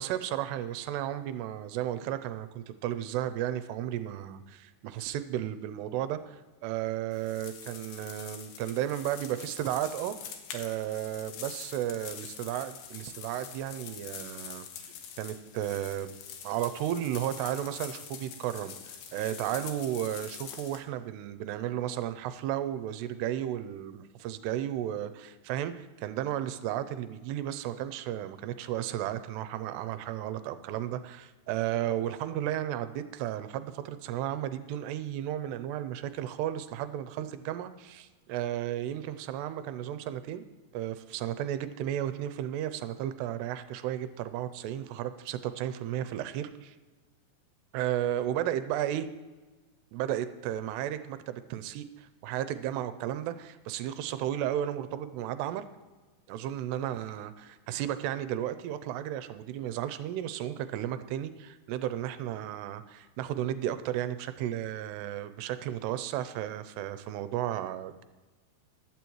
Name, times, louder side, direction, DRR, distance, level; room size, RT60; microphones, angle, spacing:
voice 1, 0.0-14.9 15.2-16.1 16.4-18.7 19.1-40.4 40.7-46.8 47.7-49.1 49.9-55.6 56.3-68.0, right 12 dB, 85° right, 12 dB, 2.6 m, -34 dB
sound 1, 7.1-20.8, left 8 dB, 70° left, 2.7 m, -45 dB
15.5 x 12.0 x 3.1 m, 1.2 s
omnidirectional pair, 4.9 m